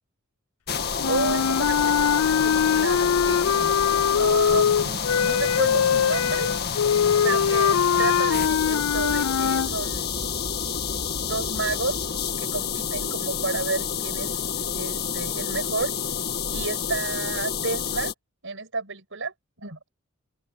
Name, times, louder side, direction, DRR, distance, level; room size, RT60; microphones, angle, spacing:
sound 1, 0.7-18.1, left 6 dB, 50° left, 2.0 m, -29 dB
sound 2, 1.0-9.7, left 8 dB, 90° left, 0.4 m, -22 dB
voice 1, 1.1-3.8 4.2-6.5 7.2-10.1 11.2-12.1 12.4-14.4 14.7-15.9 16.5-18.1 18.4-19.3 19.6-19.9, right 3 dB, 65° right, 7.6 m, -31 dB
open air
head